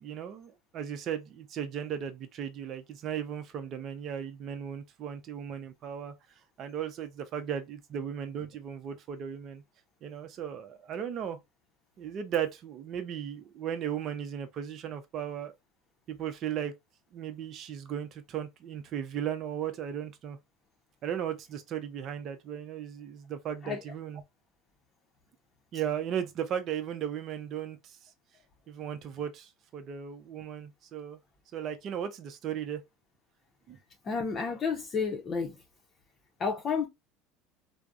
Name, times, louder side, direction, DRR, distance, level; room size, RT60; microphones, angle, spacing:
voice 1, 0.0-6.1 6.6-9.6 10.0-11.4 12.0-15.5 16.1-16.7 17.1-20.4 21.0-24.2 25.7-28.0 28.7-31.2 31.5-32.8 33.7-33.8, right 9 dB, 50° right, 0.5 m, -36 dB
voice 2, 34.0-35.6 36.4-36.9, left 5 dB, 35° left, 0.6 m, -31 dB
3.3 x 2.0 x 2.5 m
hypercardioid pair, 80°, 0 cm